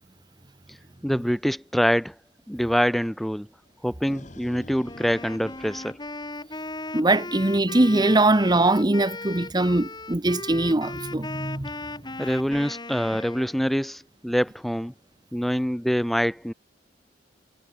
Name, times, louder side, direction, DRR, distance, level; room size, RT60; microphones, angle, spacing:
voice 1, 1.0-2.2 2.5-3.5 3.8-6.0 12.2-14.9 15.3-16.5, equal, ahead, 0.7 m, -25 dB
sound 1, 3.7-6.9, left 1 dB, 45° left, 3.4 m, -47 dB
Wind instrument woodwind instrument, 4.8-13.6, left 2 dB, 25° left, 4.7 m, -37 dB
voice 2, 6.9-11.7, right 2 dB, 25° right, 1.0 m, -21 dB
head